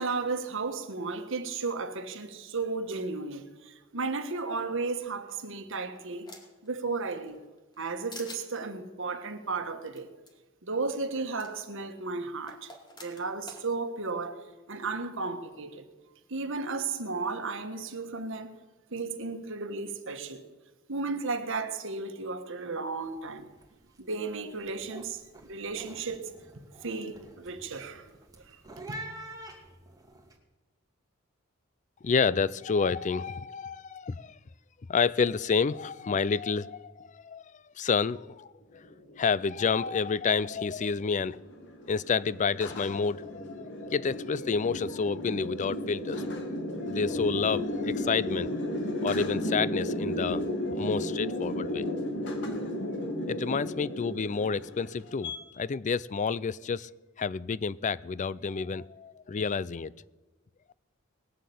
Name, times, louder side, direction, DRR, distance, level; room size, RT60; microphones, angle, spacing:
voice 1, 0.0-6.3 6.6-7.4 7.8-10.1 10.6-12.7 13.0-14.4 14.7-15.9 16.3-18.6 18.9-20.4 20.9-23.5 24.0-26.3 26.8-28.1 28.5-28.6 28.9-29.0, right 4 dB, 65° right, 1.4 m, -34 dB
sound 1, 5.3-6.7 7.1-7.8 8.1-8.4 9.9-10.0 10.3-10.4 11.4-11.5 12.5-13.6, left 2 dB, 20° left, 2.4 m, -47 dB
sound 2, 23.0-23.3 23.5-24.0 24.4-30.3, right 1 dB, 20° right, 2.4 m, -46 dB
voice 2, 32.0-34.4 34.9-37.4 37.8-38.8 39.1-41.4 41.9-46.2 46.8-48.5 49.0-52.0 53.3-56.9 57.2-59.9, left 5 dB, 35° left, 0.4 m, -29 dB
sound 3, 39.0-55.4, left 1 dB, 60° left, 2.2 m, -34 dB
19.5 x 7.5 x 8.5 m
head